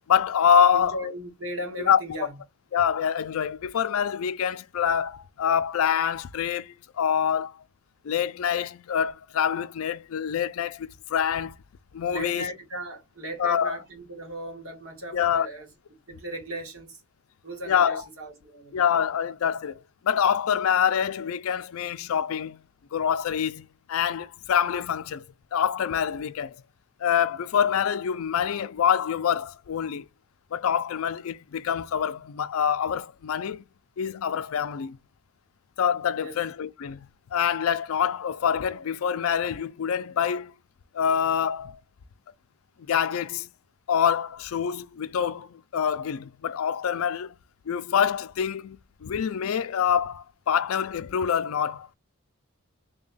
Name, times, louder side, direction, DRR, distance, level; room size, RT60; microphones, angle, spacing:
voice 1, 0.1-1.0 1.9-2.0 2.7-7.6 8.0-11.6 11.9-12.5 13.4-13.8 15.1-15.5 17.7-18.0 18.7-22.6 22.9-25.3 25.5-26.6 27.0-30.1 30.5-33.6 34.0-35.0 35.8-40.5 40.9-41.8 42.8-43.5 43.9-47.3 47.7-52.0, left 8 dB, 75° left, 0.4 m, -26 dB
voice 2, 0.7-2.4 12.1-17.0 17.4-18.8 36.1-36.4, equal, 70° right, 1.7 m, -37 dB
3.4 x 2.3 x 3.9 m
head